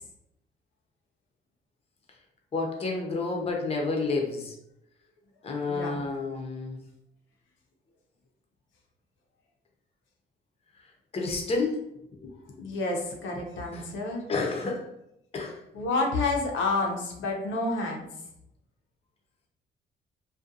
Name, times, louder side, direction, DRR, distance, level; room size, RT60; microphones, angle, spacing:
voice 1, 2.5-4.5 5.4-6.8 11.1-11.8 12.2-12.3 13.7-13.9 14.3-14.9 15.3-15.6, left 3 dB, 30° left, 1 dB, 0.6 m, -30 dB
voice 2, 5.7-6.0 12.6-14.2 15.7-18.1, left 3 dB, 75° left, 0 dB, 0.7 m, -29 dB
2.5 x 2.2 x 2.6 m, 0.80 s
cardioid pair, 90°, 20 cm